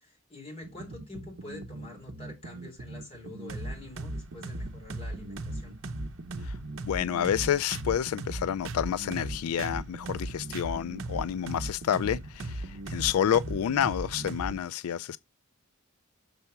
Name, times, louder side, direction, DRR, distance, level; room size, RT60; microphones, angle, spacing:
voice 1, 0.0-5.8, left 1 dB, 25° left, 4.0 m, -46 dB
sound 1, 0.6-14.6, right 1 dB, 65° right, 0.7 m, -38 dB
voice 2, 6.4-15.2, left 9 dB, 85° left, 0.3 m, -29 dB
6.8 x 4.4 x 5.8 m
head